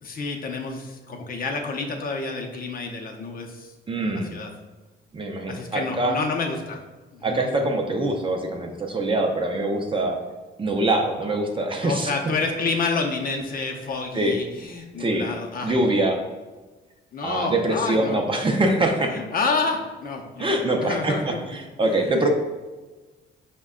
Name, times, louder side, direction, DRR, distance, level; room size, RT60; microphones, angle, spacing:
voice 1, 0.0-3.7 4.0-4.5 5.5-6.8 7.1-7.6 11.8-15.9 17.1-18.2 19.1-21.4 21.8-22.2, left 4 dB, 45° left, 2 dB, 0.6 m, -29 dB
voice 2, 3.9-4.3 5.1-6.2 7.2-10.2 10.6-12.1 14.1-14.3 15.0-15.3 15.6-16.2 17.2-19.1 20.4-21.1 21.8-22.3, right 2 dB, 25° right, 3 dB, 0.5 m, -23 dB
5.1 x 2.2 x 3.6 m, 1.2 s
cardioid pair, 90°, 20 cm